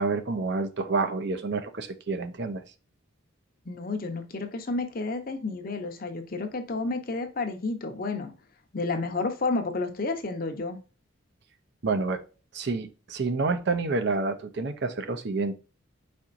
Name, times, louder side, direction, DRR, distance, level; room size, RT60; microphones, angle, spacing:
voice 1, 0.0-2.6 11.8-12.2 12.5-15.6, right 3 dB, 55° right, 9 dB, 0.5 m, -28 dB
voice 2, 3.7-8.3 8.7-10.8, left 3 dB, 45° left, 6 dB, 0.7 m, -31 dB
4.7 x 4.3 x 2.5 m, 0.34 s
head